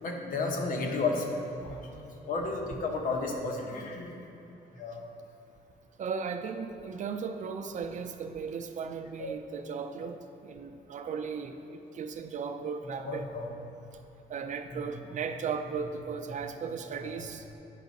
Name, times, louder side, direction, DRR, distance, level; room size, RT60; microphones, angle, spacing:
voice 1, 0.0-4.1 4.8-5.1 9.2-9.3 13.0-13.5 14.7-14.8, left 3 dB, 60° left, 1 dB, 1.1 m, -33 dB
voice 2, 6.0-13.3 14.3-17.4, right 6 dB, 50° right, 7 dB, 0.5 m, -36 dB
9.2 x 5.7 x 4.1 m, 3.0 s
cardioid pair, 110°, 16 cm